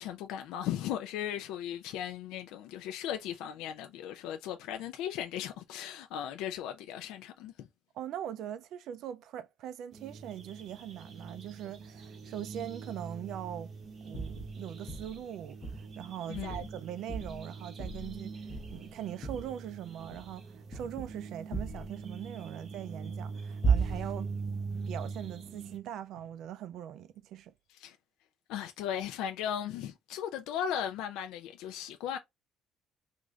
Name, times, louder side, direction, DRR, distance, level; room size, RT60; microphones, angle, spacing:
voice 1, 0.0-7.7 16.3-16.7 27.7-28.0 28.5-32.2, left 10 dB, 80° left, 0.4 m, -37 dB
voice 2, 7.9-13.7 14.0-18.5 18.7-24.3 24.9-27.5, right 10 dB, 55° right, 0.3 m, -41 dB
sound 1, 9.9-25.8, right 4 dB, 30° right, 0.7 m, -43 dB
sound 2, 14.1-14.5 14.9-15.2 15.6-15.9 16.3-16.8 17.1-17.4 17.8-18.2 18.5-18.9 19.2-19.5 20.0-20.4 20.7-21.2 21.5-21.9 23.6-24.2, right 4 dB, 20° left, 0.6 m, -33 dB
3.6 x 2.5 x 3.1 m
cardioid pair, 180°, 0 cm